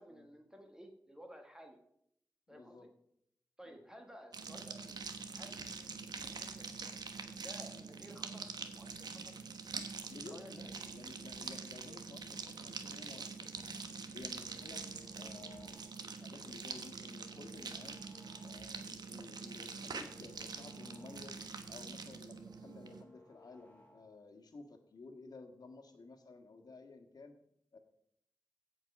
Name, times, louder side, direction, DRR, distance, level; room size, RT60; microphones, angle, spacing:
voice 1, 0.0-1.8 2.5-2.9 3.6-5.0 5.3-5.6 5.9-6.9 7.4-9.3 10.2-10.9, equal, 10° right, 3 dB, 1.4 m, -55 dB
voice 2, 2.5-2.9 3.6-3.8 10.1-14.8 15.2-15.8 16.0-18.1 18.4-21.4 21.7-27.4 27.7-27.8, left 3 dB, 70° left, 5 dB, 1.6 m, -54 dB
sound 1, 4.3-23.0, right 4 dB, 80° right, 1.1 m, -45 dB
sound 2, 13.8-16.1 16.5-18.9 19.2-21.6 21.9-24.3, left 1 dB, 20° left, 2.9 m, -64 dB
16.0 x 5.5 x 6.0 m, 0.73 s
wide cardioid pair, 120°, 7 cm